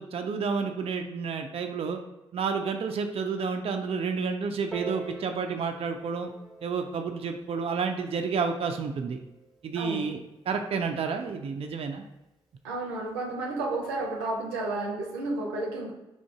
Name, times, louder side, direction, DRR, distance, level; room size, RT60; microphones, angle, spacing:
voice 1, 0.0-2.0 2.3-6.3 6.6-9.2 9.6-10.2 10.5-12.0, right 5 dB, 45° right, 5 dB, 0.4 m, -30 dB
Piano, 4.7-9.9 10.7-10.8, right 3 dB, 5° right, 1.2 m, -45 dB
voice 2, 9.7-10.1 12.6-15.9, right 2 dB, 90° right, -1 dB, 0.6 m, -32 dB
3.6 x 2.6 x 4.6 m, 0.97 s
hypercardioid pair, 40°, 13 cm